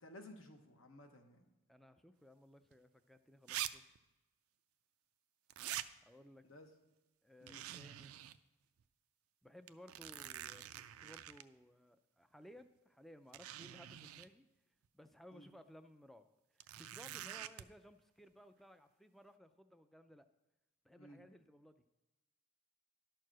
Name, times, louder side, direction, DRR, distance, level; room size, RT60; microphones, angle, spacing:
voice 1, 0.0-1.5 6.4-6.7 7.4-7.6 15.3-15.5 21.0-21.2, left 1 dB, 75° left, 5 dB, 1.1 m, -56 dB
voice 2, 1.7-3.8 6.1-6.4 7.2-8.2 9.4-14.5 14.9-16.3 16.5-20.3 20.8-21.8, equal, ahead, 10 dB, 0.3 m, -59 dB
sound 1, 2.7-2.8 3.5-3.7 4.0-4.1 5.5-5.9 7.5-8.4 8.8-8.9 9.7-11.4 12.6-12.7 13.3-14.3 16.6-17.6, right 12 dB, 85° right, 0.4 m, -45 dB
11.5 x 4.6 x 6.2 m, 1.0 s
head